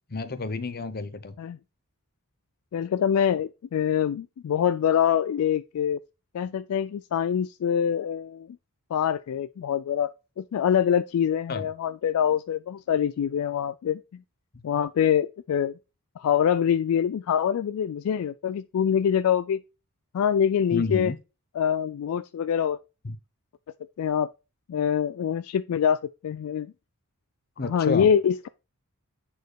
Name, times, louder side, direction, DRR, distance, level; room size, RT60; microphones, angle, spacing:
voice 1, 0.1-1.4 11.5-11.7 14.5-14.6 20.7-21.2 23.0-23.2 27.6-28.1, left 3 dB, 45° left, 0.8 m, -30 dB
voice 2, 2.7-6.0 6.3-8.6 8.9-10.1 10.4-14.0 14.6-15.8 16.2-19.6 20.1-21.1 21.6-22.8 24.0-24.3 24.7-26.7 27.6-28.5, left 8 dB, 70° left, 0.3 m, -25 dB
8.3 x 4.4 x 4.6 m
head